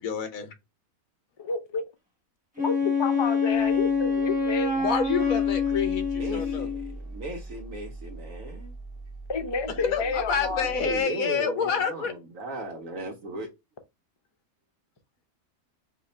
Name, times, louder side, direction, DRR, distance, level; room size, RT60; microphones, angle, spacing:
voice 1, 0.0-0.5 4.8-6.7 9.9-12.1, left 6 dB, 65° left, 1.3 m, -28 dB
voice 2, 1.4-1.8 2.6-4.7 9.3-10.7, left 4 dB, 45° left, 0.3 m, -30 dB
Wind instrument woodwind instrument, 2.6-6.9, left 5 dB, 5° right, 1.0 m, -26 dB
sound 1, 3.5-11.0, right 2 dB, 45° right, 0.9 m, -42 dB
voice 3, 6.2-8.7 10.7-13.5, right 1 dB, 65° right, 1.2 m, -36 dB
4.9 x 2.4 x 4.1 m
omnidirectional pair, 1.6 m